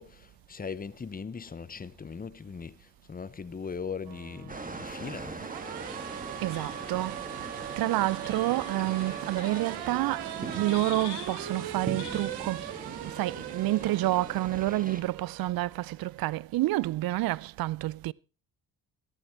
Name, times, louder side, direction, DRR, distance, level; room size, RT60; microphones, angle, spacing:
voice 1, 0.0-5.5, left 5 dB, 20° left, 0.8 m, -39 dB
sound 1, 4.1-16.3, right 14 dB, 80° right, 1.3 m, -41 dB
sound 2, 4.5-15.0, right 3 dB, 20° right, 2.7 m, -41 dB
voice 2, 6.4-7.2 7.8-18.1, right 17 dB, 65° right, 0.6 m, -29 dB
sound 3, 6.5-12.7 13.6-14.2, left 14 dB, 75° left, 1.3 m, -49 dB
14.0 x 11.5 x 4.4 m
supercardioid pair, 65°, 39 cm